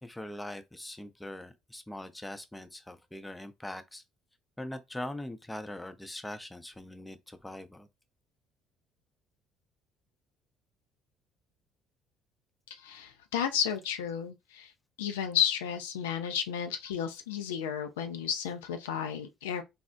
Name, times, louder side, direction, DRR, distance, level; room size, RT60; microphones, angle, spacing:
voice 1, 0.0-4.0 4.6-7.9, left 1 dB, 10° left, 0.5 m, -42 dB
voice 2, 12.7-14.7 15.0-19.6, left 8 dB, 75° left, 0.3 m, -32 dB
3.9 x 2.0 x 2.4 m
figure-of-eight pair, 55°, 0 cm